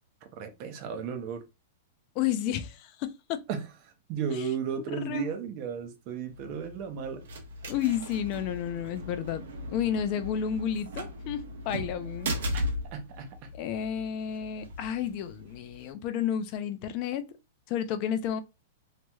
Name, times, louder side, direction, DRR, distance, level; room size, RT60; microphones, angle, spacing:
voice 1, 0.4-1.4 3.5-3.7 4.1-7.2 12.5-12.6 12.9-13.5, right 6 dB, 35° right, 0.6 m, -34 dB
voice 2, 2.2-3.4 4.8-5.3 7.6-9.4 9.7-12.3 13.6-17.2 17.7-18.4, left 9 dB, 35° left, 0.4 m, -31 dB
sound 1, 6.3-15.9, equal, 80° right, 0.9 m, -38 dB
3.0 x 2.9 x 2.3 m
supercardioid pair, 165°, 0 cm